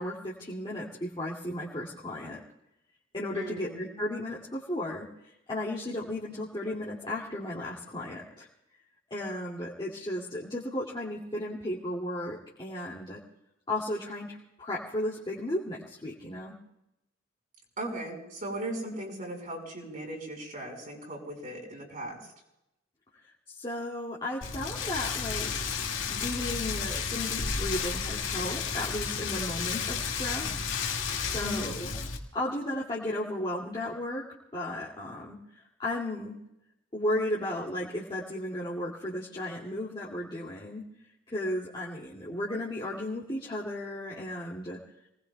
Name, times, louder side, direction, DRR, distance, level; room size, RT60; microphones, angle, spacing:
voice 1, 0.0-2.4 3.1-8.5 9.1-13.2 13.7-16.6 23.5-25.5 26.1-30.6 31.2-32.0 32.3-34.2 34.5-35.4 35.8-36.4 36.9-40.8 41.3-44.8, left 1 dB, 25° left, -6 dB, 2.5 m, -34 dB
voice 2, 3.3-3.8 17.8-22.3 31.4-31.8, right 1 dB, 45° right, -1 dB, 5.1 m, -37 dB
Rain, 24.4-32.2, left 5 dB, 85° left, 2.2 m, -32 dB
30.0 x 19.5 x 2.3 m, 0.85 s
head